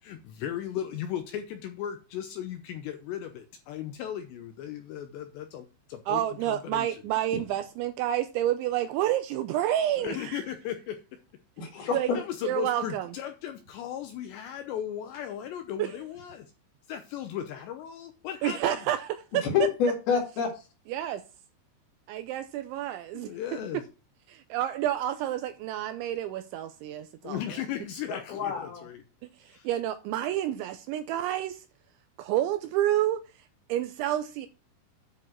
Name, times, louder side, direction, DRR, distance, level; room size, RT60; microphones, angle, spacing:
voice 1, 0.0-7.0 10.0-11.0 12.1-16.5 16.9-18.8 23.1-23.8 27.2-29.0 29.5-29.7, left 10 dB, 80° left, 2.6 m, -36 dB
voice 2, 6.1-10.4 11.9-12.1 12.4-13.1 15.8-15.9 18.4-19.5 20.9-21.2 22.1-23.3 24.3-27.4 29.4-31.6 32.2-33.2 33.7-34.5, right 12 dB, 80° right, 2.7 m, -29 dB
voice 3, 11.6-12.2 19.4-20.5 28.1-28.8, left 6 dB, 60° left, 3.3 m, -27 dB
10.0 x 6.1 x 4.4 m
omnidirectional pair, 5.8 m